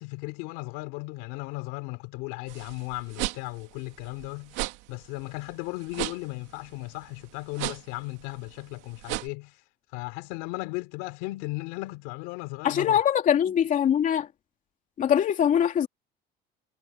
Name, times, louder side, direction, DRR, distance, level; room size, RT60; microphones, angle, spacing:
voice 1, 0.0-4.6 4.9-9.6 9.9-13.0, left 23 dB, 80° left, 3.7 m, -36 dB
sound 1, 2.5-9.3, right 20 dB, 75° right, 2.5 m, -36 dB
voice 2, 12.6-14.3 15.0-15.9, left 9 dB, 45° left, 2.9 m, -22 dB
supercardioid pair, 110°, 19 cm